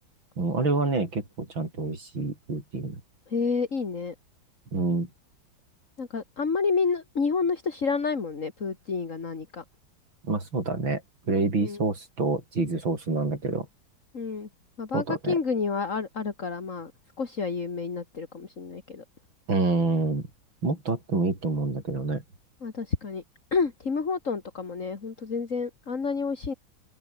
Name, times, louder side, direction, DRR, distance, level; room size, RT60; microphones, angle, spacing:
voice 1, 0.4-3.0 4.7-5.1 10.2-11.0 11.3-13.7 14.9-15.3 19.5-20.3 20.6-22.2, right 3 dB, 75° right, 6.7 m, -27 dB
voice 2, 3.3-4.1 6.0-9.6 11.6-11.8 14.1-14.5 14.8-16.9 17.2-19.0 22.6-23.2 23.5-26.5, left 5 dB, 40° left, 2.6 m, -29 dB
open air
omnidirectional pair, 2.2 m